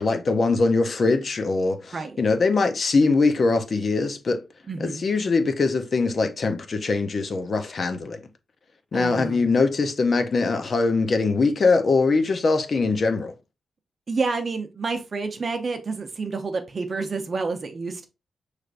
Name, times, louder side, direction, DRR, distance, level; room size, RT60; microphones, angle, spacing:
voice 1, 0.0-4.4 4.8-8.2 8.9-13.3, left 3 dB, 40° left, 0.6 m, -22 dB
voice 2, 4.7-5.0 8.9-9.5 14.1-18.1, right 4 dB, 35° right, 0.7 m, -29 dB
6.2 x 3.3 x 2.5 m
wide cardioid pair, 160°, 0 cm